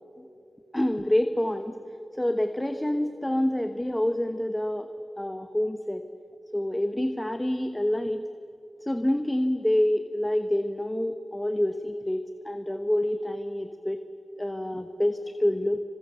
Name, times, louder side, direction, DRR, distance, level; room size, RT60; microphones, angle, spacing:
voice 1, 0.7-1.8 2.2-4.9 5.2-6.1 6.5-8.2 8.8-14.0 14.4-15.8, left 1 dB, 15° left, 8 dB, 1.1 m, -27 dB
28.5 x 28.5 x 6.9 m, 3.0 s
cardioid pair, 60°, 0 cm